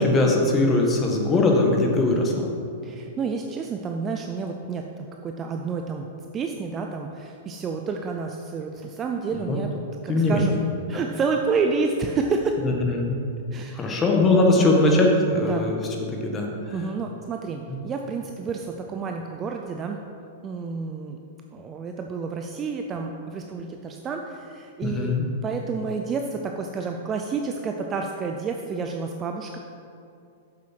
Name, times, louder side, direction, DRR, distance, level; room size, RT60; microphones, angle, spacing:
voice 1, 0.0-2.5 9.3-9.6 10.1-10.5 12.6-13.2 13.7-15.7 16.1-16.7 24.8-25.2, left 2 dB, 20° left, 1 dB, 1.7 m, -21 dB
voice 2, 2.8-6.1 6.3-10.5 10.9-12.6 13.5-14.0 14.5-14.7 15.4-15.7 16.7-20.0 20.4-21.2 21.5-29.6, right 4 dB, 25° right, 3 dB, 0.6 m, -29 dB
7.4 x 7.4 x 5.9 m, 2.6 s
hypercardioid pair, 135°, 0 cm